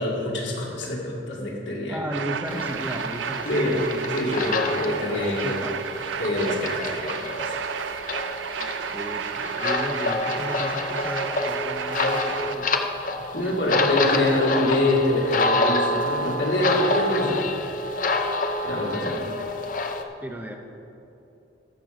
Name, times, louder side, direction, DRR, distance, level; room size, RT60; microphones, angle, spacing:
voice 1, 0.0-2.0 2.5-2.6 3.5-5.6 6.2-7.5 13.3-17.5 18.6-19.2, left 1 dB, 75° left, -3 dB, 2.2 m, -25 dB
voice 2, 1.9-3.9 5.1-5.7 8.6-12.7 13.3-14.6 18.5-18.6 19.0-19.9 20.2-20.6, right 1 dB, 10° right, 2 dB, 0.6 m, -35 dB
sound 1, 2.1-12.5, right 7 dB, 80° right, 0.4 m, -32 dB
sound 2, 2.5-20.0, left 2 dB, 45° left, 0.6 m, -28 dB
12.0 x 7.5 x 5.0 m, 2.8 s
head